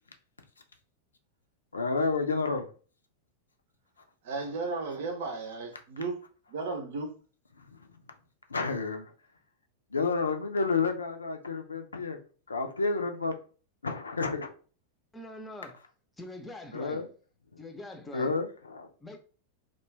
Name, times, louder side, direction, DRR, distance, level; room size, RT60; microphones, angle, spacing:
voice 1, 1.7-2.7 7.6-7.7 8.5-9.1 9.9-12.2 12.5-13.4 13.8-14.5 16.7-17.1 18.1-18.9, left 4 dB, 75° left, 0.4 m, -30 dB
voice 2, 4.2-6.2 6.5-7.1, right 3 dB, 55° right, 0.7 m, -34 dB
voice 3, 15.1-15.8 16.2-17.0 17.6-18.3 19.0-19.2, left 1 dB, 10° left, 0.6 m, -43 dB
2.4 x 2.2 x 3.2 m
figure-of-eight pair, 90°, 0 cm